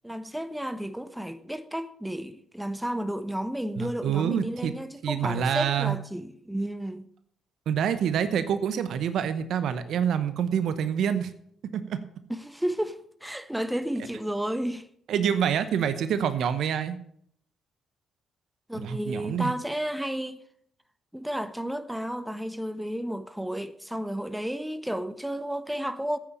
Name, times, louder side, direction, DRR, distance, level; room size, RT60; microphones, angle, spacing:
voice 1, 0.0-7.1 12.3-14.9 18.7-20.4 21.1-26.2, equal, 5° right, 1.1 m, -32 dB
voice 2, 3.8-4.8 5.0-6.0 7.7-11.3 11.7-12.0 15.1-17.0 18.7-19.5, right 8 dB, 65° right, 0.9 m, -26 dB
9.1 x 8.6 x 8.5 m
hypercardioid pair, 50°, 0 cm